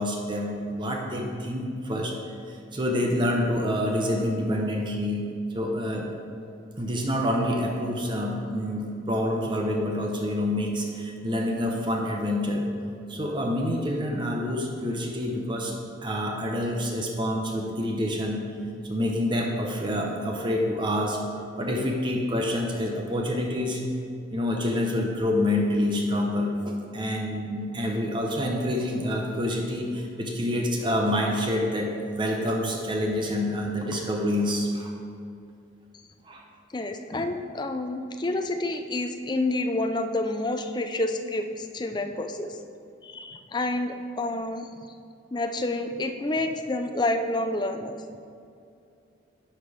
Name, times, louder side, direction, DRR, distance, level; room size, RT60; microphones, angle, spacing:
voice 1, 0.0-2.1 2.5-6.1 6.8-12.7 13.1-18.4 18.8-21.2 21.6-23.8 24.3-34.9 36.3-36.4, left 1 dB, 25° right, 1 dB, 0.8 m, -27 dB
voice 2, 36.7-42.6 43.0-44.7 45.3-48.0, left 2 dB, 25° left, 7 dB, 0.4 m, -29 dB
11.0 x 4.4 x 4.9 m, 2.5 s
head